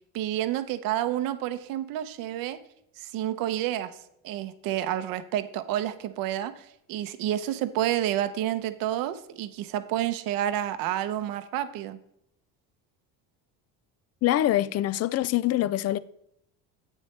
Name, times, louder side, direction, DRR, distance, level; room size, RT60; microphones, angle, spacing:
voice 1, 0.1-2.6 3.0-3.9 4.2-12.0, right 12 dB, 70° right, 0.8 m, -29 dB
voice 2, 14.2-16.0, left 14 dB, 45° left, 0.4 m, -24 dB
9.7 x 8.8 x 3.3 m
cardioid pair, 130°, 36 cm